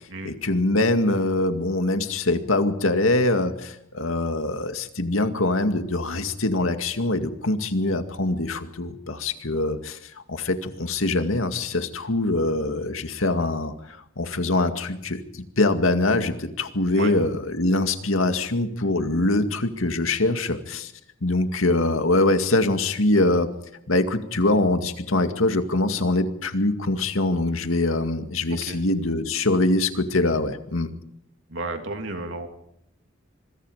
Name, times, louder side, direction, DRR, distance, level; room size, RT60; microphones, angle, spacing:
voice 1, 0.2-20.9 21.2-23.5 23.9-30.9, left 2 dB, 85° left, 7 dB, 2.2 m, -23 dB
voice 2, 31.5-32.5, right 2 dB, 65° right, 5 dB, 3.2 m, -32 dB
26.5 x 22.5 x 5.1 m, 0.79 s
head